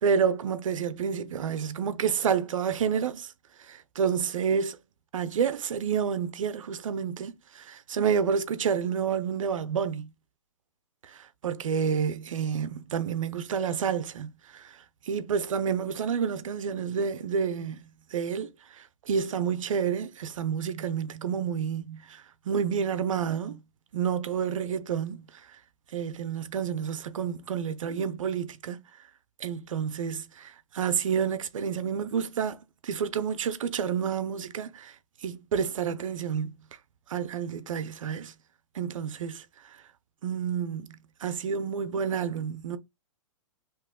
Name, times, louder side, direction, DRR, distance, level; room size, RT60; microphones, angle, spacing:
voice 1, 0.0-3.3 3.6-4.8 5.1-10.1 11.0-23.6 23.9-25.5 25.9-28.8 29.4-35.0 35.2-36.6 37.1-38.3 38.7-39.8 40.2-41.0 41.2-42.8, right 7 dB, 90° right, 0.5 m, -29 dB
2.9 x 2.9 x 3.5 m
hypercardioid pair, 140°, 16 cm